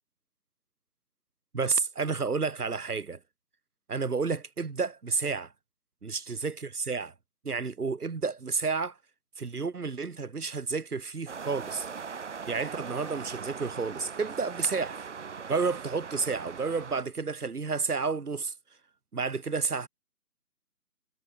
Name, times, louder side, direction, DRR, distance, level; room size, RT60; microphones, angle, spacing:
voice 1, 1.5-3.2 3.9-5.5 6.0-7.1 7.4-9.0 9.4-11.9 12.5-15.0 15.5-18.5 19.1-19.9, right 4 dB, 60° right, 7.8 m, -31 dB
sound 1, 11.3-17.0, right 6 dB, 45° right, 6.3 m, -40 dB
hypercardioid pair, 170°, 50 cm